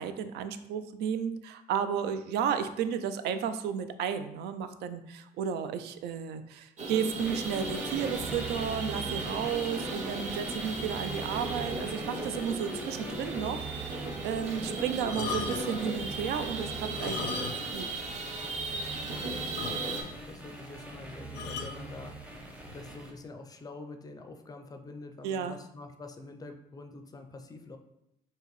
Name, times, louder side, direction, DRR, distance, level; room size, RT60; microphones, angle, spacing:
voice 1, 0.0-13.7 14.2-17.9 25.2-25.6, right 8 dB, 80° right, 10 dB, 0.4 m, -33 dB
sound 1, 6.8-20.0, right 3 dB, 45° right, 0.7 m, -36 dB
sound 2, 7.2-23.1, right 2 dB, 10° right, 0.7 m, -42 dB
sound 3, 15.0-15.9 16.8-17.8 18.1-18.2 18.7-18.8 19.1-19.2 19.6-20.2 21.3-21.8 22.7-22.9, left 6 dB, 90° left, 0.5 m, -38 dB
voice 2, 19.6-22.2 22.7-27.8, left 3 dB, 20° left, 6 dB, 0.4 m, -46 dB
4.5 x 2.9 x 3.1 m, 0.83 s
cardioid pair, 110°, 17 cm